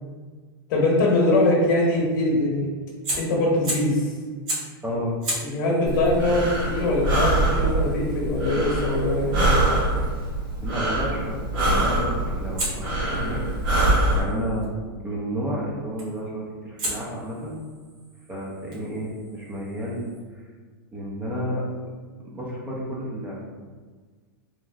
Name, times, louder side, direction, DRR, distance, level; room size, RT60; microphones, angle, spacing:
voice 1, 0.7-2.7 3.2-4.1 5.4-9.6, left 2 dB, 60° left, -3 dB, 1.0 m, -22 dB
Fire, 3.0-4.0 4.5-4.8 5.2-10.1 12.6-14.7 16.0-16.3 16.8-20.2, right 1 dB, 45° right, 1.2 m, -36 dB
voice 2, 4.8-5.2 10.6-13.5 14.1-14.7 15.0-17.6 18.3-20.4 20.9-21.6 22.2-23.4, equal, 10° right, -5 dB, 0.5 m, -31 dB
Breathing, 5.9-14.2, right 1 dB, 60° right, 1.3 m, -24 dB
3.0 x 2.4 x 2.3 m, 1.5 s
hypercardioid pair, 135°, 12 cm